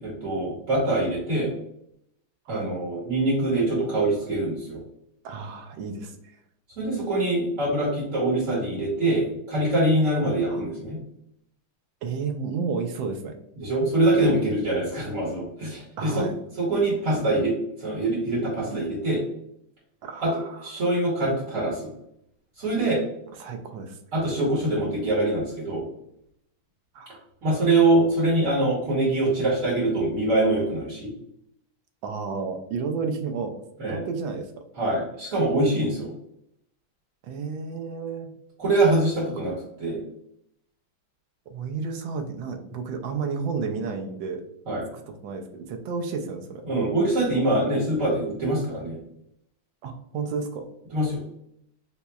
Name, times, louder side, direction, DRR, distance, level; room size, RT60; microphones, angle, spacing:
voice 1, 0.0-1.5 2.5-4.8 6.8-11.0 13.6-16.3 16.6-19.2 20.2-21.9 22.6-23.0 24.1-25.8 27.4-31.1 33.8-34.0 34.8-36.1 38.6-39.5 39.8-40.0 44.7-44.8 46.7-49.0 50.9-51.2, right 2 dB, 50° right, -5 dB, 1.1 m, -24 dB
voice 2, 5.2-6.2 10.5-10.7 12.0-13.3 16.0-16.3 20.0-20.7 23.3-24.0 26.9-27.2 32.0-33.5 33.9-34.5 37.2-38.3 39.3-39.4 41.5-44.4 44.9-46.7 49.8-50.7, right 5 dB, 75° right, 5 dB, 1.2 m, -32 dB
5.5 x 2.0 x 2.3 m, 0.76 s
omnidirectional pair, 2.3 m